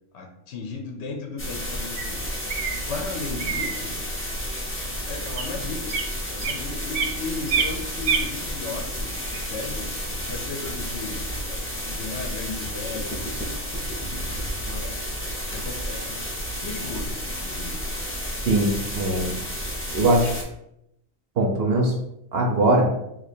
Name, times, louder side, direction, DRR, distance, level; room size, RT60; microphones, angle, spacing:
voice 1, 0.1-2.3 2.9-3.9 5.1-6.0 6.3-9.9 10.3-11.6 11.9-13.2 14.6-15.1 15.5-16.2 16.6-17.9, left 4 dB, 65° left, 3 dB, 0.7 m, -35 dB
sound 1, 1.4-20.4, equal, 15° left, 0.4 m, -31 dB
sound 2, 2.0-2.1 2.5-2.8 3.4-3.8 4.5-4.7 5.3-5.4 5.9-6.1 6.4-7.2 7.5-8.3 9.1-9.8, right 5 dB, 85° right, 1.0 m, -27 dB
voice 2, 18.4-19.4 19.9-20.3 21.4-21.9 22.3-22.9, right 1 dB, 60° right, 0 dB, 0.7 m, -21 dB
2.8 x 2.4 x 4.2 m, 0.81 s
omnidirectional pair, 1.4 m